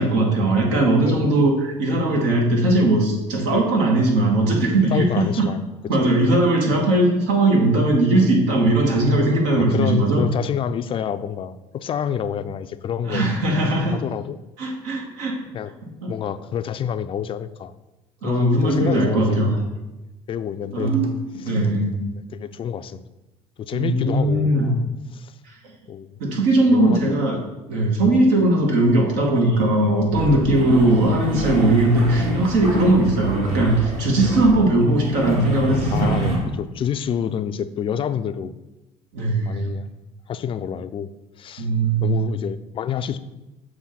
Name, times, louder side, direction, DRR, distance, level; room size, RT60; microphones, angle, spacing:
voice 1, 0.0-5.5 5.9-10.3 13.0-14.0 14.6-15.4 16.0-16.1 18.2-19.6 20.7-21.0 21.4-21.9 23.7-24.8 25.4-25.5 26.2-27.4 27.7-36.2 39.1-39.7 41.6-42.2, right 2 dB, 80° right, 1 dB, 1.5 m, -19 dB
voice 2, 4.9-5.6 6.0-6.1 9.6-13.3 13.9-14.4 15.5-15.7 16.1-17.7 18.2-19.4 20.3-20.9 21.4-21.6 22.1-23.0 23.6-24.5 25.1-25.3 25.9-26.1 26.7-27.2 30.6-30.9 35.9-38.5 39.4-39.9 40.3-41.1 41.4-41.7 42.0-43.2, left 8 dB, 40° left, 12 dB, 0.4 m, -28 dB
sound 1, 18.5-19.1 20.6-22.6, right 3 dB, 45° right, 1.1 m, -28 dB
sound 2, 30.1-36.4, right 2 dB, 60° right, 2.3 m, -28 dB
7.0 x 2.6 x 5.7 m, 1.0 s
supercardioid pair, 90°, 14 cm